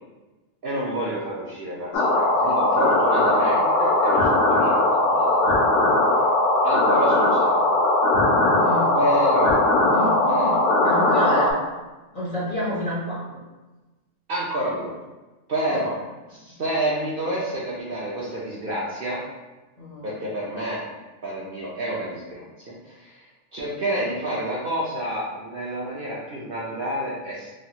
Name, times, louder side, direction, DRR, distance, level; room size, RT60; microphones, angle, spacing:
voice 1, 0.6-5.7 6.6-7.8 9.0-9.6 10.3-10.5 14.3-14.9 15.5-16.0 16.4-19.2 20.0-20.8 21.2-23.2 23.5-27.5, right 1 dB, 60° right, -5 dB, 0.6 m, -29 dB
sound 1, 1.9-11.5, left 2 dB, 70° left, 0.9 m, -19 dB
voice 2, 8.6-9.0 9.9-10.6 10.8-11.6 12.1-13.4 15.7-15.8 16.5-16.6 19.8-20.1, equal, 40° left, -8 dB, 0.5 m, -29 dB
3.1 x 2.3 x 2.8 m, 1.2 s
omnidirectional pair, 1.3 m